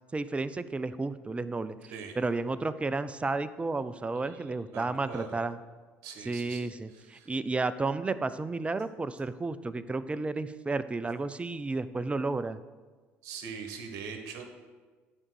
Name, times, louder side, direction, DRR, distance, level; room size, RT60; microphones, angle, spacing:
voice 1, 0.1-5.6 6.3-12.6, right 3 dB, 20° right, 14 dB, 0.5 m, -32 dB
voice 2, 4.1-5.4 6.0-7.3 13.2-14.4, right 6 dB, 65° right, 5 dB, 1.4 m, -43 dB
9.7 x 5.0 x 6.3 m, 1.4 s
hypercardioid pair, 65°, 6 cm